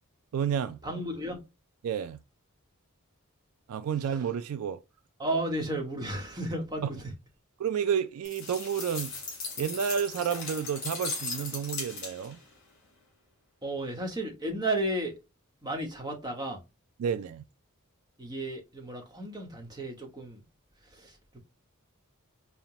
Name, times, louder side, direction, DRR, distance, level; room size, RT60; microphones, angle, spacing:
voice 1, 0.3-0.8 1.8-2.2 3.7-4.8 6.8-6.9 7.6-9.1 9.6-12.4 17.0-17.4, right 8 dB, 75° right, 0.3 m, -30 dB
voice 2, 0.8-1.4 5.2-7.1 13.6-15.2 15.6-16.6 18.2-20.4 20.8-21.4, right 1 dB, 20° right, 1.0 m, -33 dB
sound 1, 8.2-12.4, left 4 dB, 60° left, 2.5 m, -37 dB
5.5 x 2.2 x 2.8 m
head